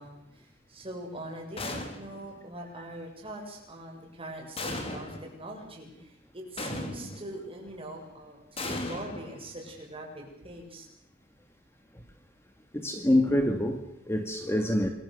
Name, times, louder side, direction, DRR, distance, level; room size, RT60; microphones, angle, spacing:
voice 1, 0.0-10.9, right 1 dB, 30° right, 1 dB, 7.7 m, -42 dB
sound 1, 1.6-2.3 4.6-5.4 6.6-7.3 8.6-9.8, left 2 dB, 30° left, 4.2 m, -37 dB
voice 2, 12.7-14.9, left 1 dB, 15° left, 5 dB, 2.2 m, -26 dB
27.5 x 22.5 x 6.9 m, 0.77 s
head